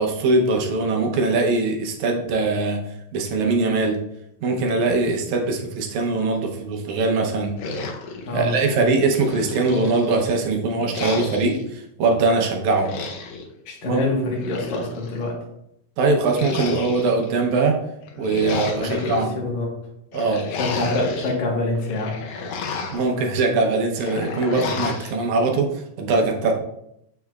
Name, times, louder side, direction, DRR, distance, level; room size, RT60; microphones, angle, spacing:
voice 1, 0.0-2.8 3.1-4.0 4.4-7.5 8.3-12.9 13.9-14.0 16.0-17.8 18.2-19.3 20.1-20.4 22.9-25.7 26.0-26.5, right 3 dB, 70° right, 2 dB, 2.0 m, -21 dB
sound 1, 7.6-8.7 9.1-10.3 10.9-11.6 12.7-13.5 14.2-15.2 16.3-17.3 18.0-19.3 20.1-21.4 21.8-23.1 24.0-25.1, left 3 dB, 85° left, 2.5 m, -31 dB
voice 2, 8.2-8.8 13.7-15.4 18.8-19.7 20.5-22.2, left 2 dB, 60° left, -1 dB, 2.5 m, -26 dB
6.7 x 6.4 x 2.3 m, 0.78 s
omnidirectional pair, 3.9 m